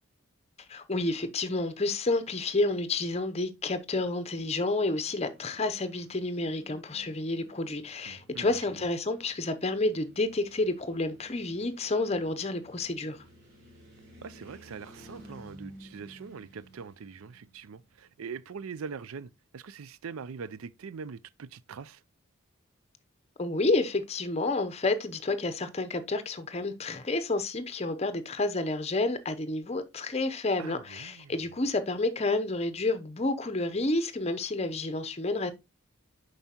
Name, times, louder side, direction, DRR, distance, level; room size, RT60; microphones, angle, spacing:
voice 1, 0.7-13.2 23.4-35.5, left 2 dB, 30° left, 0.6 m, -30 dB
sound 1, 4.5-18.7, right 1 dB, 50° right, 3.1 m, -55 dB
voice 2, 8.1-8.5 14.2-22.0 30.6-31.3, right 5 dB, 80° right, 0.5 m, -42 dB
7.1 x 5.4 x 2.9 m
head